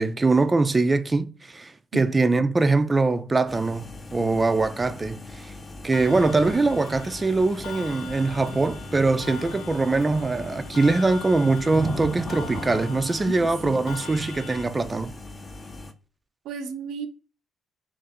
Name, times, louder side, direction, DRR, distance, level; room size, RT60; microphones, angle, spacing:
voice 1, 0.0-5.5 5.8-15.1, right 3 dB, 25° right, 0.4 m, -23 dB
sound 1, 3.5-15.9, left 2 dB, 30° left, 0.5 m, -41 dB
Clock, 5.9-14.7, left 5 dB, 80° left, 0.6 m, -41 dB
sound 2, 6.1-13.0, equal, 10° left, 1.0 m, -37 dB
voice 2, 13.2-13.8 16.4-17.1, right 5 dB, 85° right, 0.5 m, -34 dB
3.0 x 2.5 x 4.0 m
cardioid pair, 90°, 0 cm